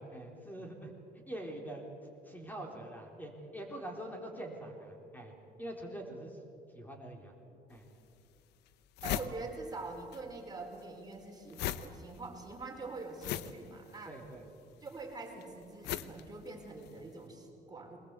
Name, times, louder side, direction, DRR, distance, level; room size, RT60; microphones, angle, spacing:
voice 1, 0.0-1.8 2.2-6.4 6.7-7.3 7.7-7.9 14.0-14.5 14.8-14.9, right 1 dB, 10° left, 2 dB, 3.9 m, -44 dB
sound 1, 7.7-7.8 8.4-8.5 8.7-10.2 10.5-17.0, left 12 dB, 85° left, 0.8 m, -40 dB
voice 2, 9.0-14.2 14.8-18.0, right 3 dB, 25° right, 1 dB, 4.3 m, -44 dB
22.0 x 20.0 x 8.3 m, 2.9 s
cardioid pair, 110°, 17 cm